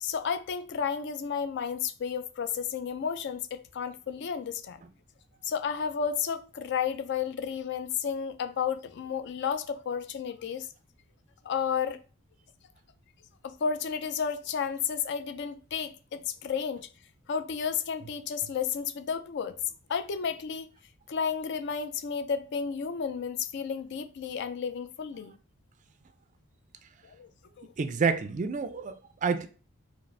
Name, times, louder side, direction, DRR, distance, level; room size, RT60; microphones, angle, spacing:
voice 1, 0.0-4.8 5.4-10.7 11.4-12.0 13.4-16.9 17.3-19.6 19.9-20.7 21.1-25.4 27.0-27.3 27.6-27.7, left 7 dB, 55° left, 0.4 m, -32 dB
voice 2, 27.8-29.5, right 5 dB, 35° right, 0.3 m, -28 dB
4.7 x 2.0 x 3.2 m
head